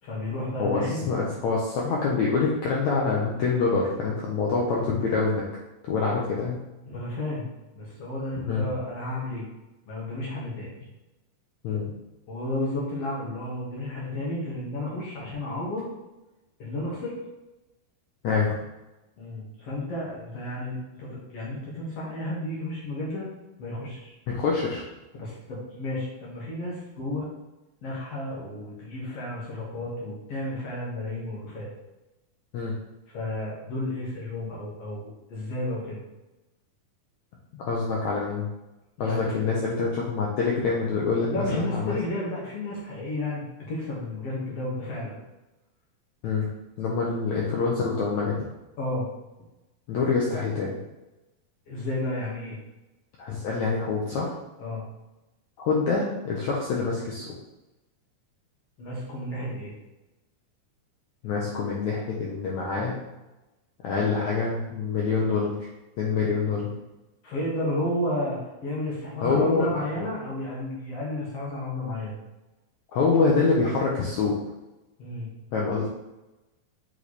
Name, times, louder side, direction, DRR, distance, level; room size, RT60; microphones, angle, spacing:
voice 1, 0.0-1.1 6.8-7.5 7.7-9.4 9.9-10.7 12.3-15.9 16.6-17.1 19.2-23.3 23.6-24.1 25.1-27.3 27.8-31.7 33.1-36.0 39.0-39.3 41.3-45.2 48.8-49.1 51.7-52.6 54.6-54.8 58.8-59.7 67.2-72.2 75.0-75.3, left 1 dB, 55° left, -4 dB, 2.0 m, -32 dB
voice 2, 1.1-5.4 5.9-6.6 8.5-8.6 11.6-11.8 18.2-18.6 24.3-24.8 32.5-32.7 37.5-38.5 39.0-41.9 46.2-46.5 46.8-48.4 49.9-50.8 53.2-54.3 55.6-57.3 61.2-62.9 63.8-65.5 66.0-66.7 69.2-69.7 72.9-74.4 75.5-75.9, left 4 dB, 80° left, -3 dB, 1.6 m, -25 dB
8.0 x 3.4 x 4.1 m, 1.0 s
omnidirectional pair, 4.5 m